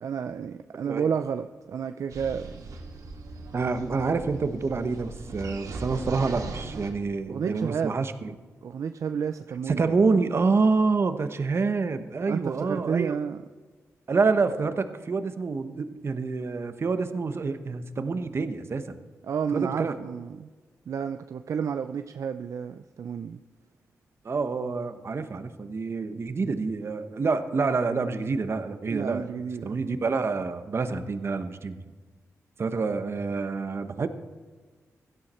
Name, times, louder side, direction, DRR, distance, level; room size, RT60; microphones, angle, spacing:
voice 1, 0.0-2.7 7.3-8.0 8.6-9.8 12.3-13.4 19.2-20.5 20.9-23.4 28.9-29.8, right 7 dB, 65° right, 8 dB, 0.5 m, -31 dB
sound 1, 2.1-6.9, right 3 dB, 85° right, 2.2 m, -39 dB
voice 2, 3.5-8.3 9.7-13.2 14.1-19.0 19.5-19.9 24.2-29.3 29.6-31.8 32.6-34.1, right 4 dB, 45° right, 9 dB, 1.1 m, -27 dB
16.5 x 12.0 x 4.4 m, 1.4 s
cardioid pair, 90°, 6 cm